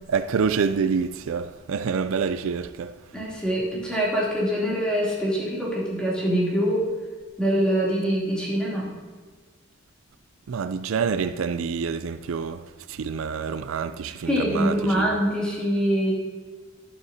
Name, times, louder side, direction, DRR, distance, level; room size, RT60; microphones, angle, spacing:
voice 1, 0.1-2.9 10.5-12.6 12.9-15.2, right 6 dB, 75° right, 0.4 m, -27 dB
voice 2, 3.1-6.9 7.4-8.9 14.3-16.1, equal, 5° left, 2.9 m, -24 dB
11.5 x 11.0 x 2.8 m
head